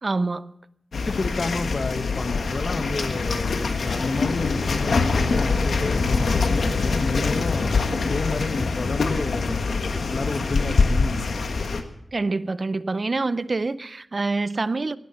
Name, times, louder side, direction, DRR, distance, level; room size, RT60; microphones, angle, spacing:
voice 1, 0.0-0.5 12.1-15.0, right 3 dB, 45° right, 0.5 m, -26 dB
sound 1, 0.9-11.8, left 4 dB, 80° left, 1.5 m, -24 dB
voice 2, 1.1-9.6 10.1-11.4, left 3 dB, 55° left, 1.3 m, -30 dB
17.0 x 10.5 x 6.8 m
wide cardioid pair, 85°, 0 cm